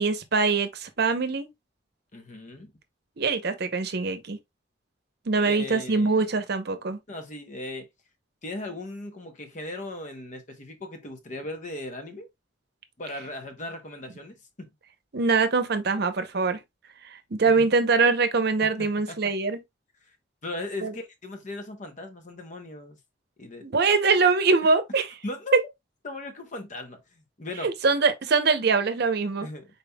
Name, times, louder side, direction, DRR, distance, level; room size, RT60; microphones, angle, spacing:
voice 1, 0.0-1.5 3.2-4.4 5.3-7.0 15.1-16.6 17.0-19.6 20.8-20.9 23.6-25.1 27.6-29.5, right 4 dB, 60° right, 0.7 m, -23 dB
voice 2, 2.1-2.7 5.4-6.3 7.1-7.9 8.4-12.3 13.0-14.7 17.6-17.7 18.6-19.2 20.0-20.2 20.4-23.0 23.4-23.7 25.2-25.6 26.0-27.7 29.4-29.7, left 2 dB, 40° left, 0.9 m, -38 dB
5.2 x 4.1 x 2.2 m
head